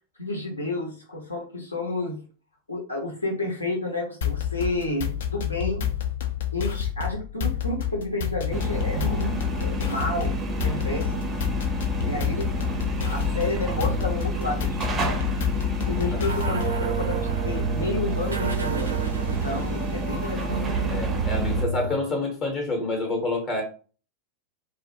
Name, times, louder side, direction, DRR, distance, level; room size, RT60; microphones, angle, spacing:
voice 1, 0.2-2.2 2.7-5.8 6.5-10.4 10.6-11.1 12.0-12.8 13.0-15.2 15.9-19.0 19.4-20.8, left 2 dB, 80° left, -1 dB, 0.8 m, -30 dB
sound 1, 4.2-16.9, left 10 dB, 60° left, 0.4 m, -29 dB
sound 2, 8.5-21.6, right 2 dB, 20° right, 0.5 m, -29 dB
sound 3, 16.3-22.0, right 5 dB, 75° right, 0.5 m, -30 dB
voice 2, 20.9-23.6, left 2 dB, 35° left, 1 dB, 0.8 m, -28 dB
2.4 x 2.0 x 2.7 m, 0.38 s
figure-of-eight pair, 90°, 0 cm